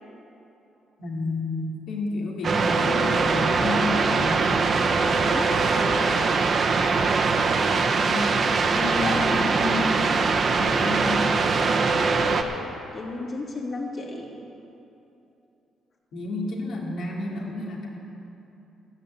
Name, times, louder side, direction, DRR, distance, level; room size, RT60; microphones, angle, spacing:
voice 1, 1.0-4.5 8.0-8.5 8.7-11.3 16.1-17.9, left 2 dB, 75° left, -2 dB, 2.6 m, -30 dB
sound 1, 2.4-12.4, right 4 dB, 50° right, 1.0 m, -22 dB
voice 2, 5.2-6.0 12.9-14.3, left 2 dB, 50° left, -2 dB, 2.8 m, -34 dB
14.0 x 7.4 x 8.5 m, 2.9 s
cardioid pair, 90°, 0 cm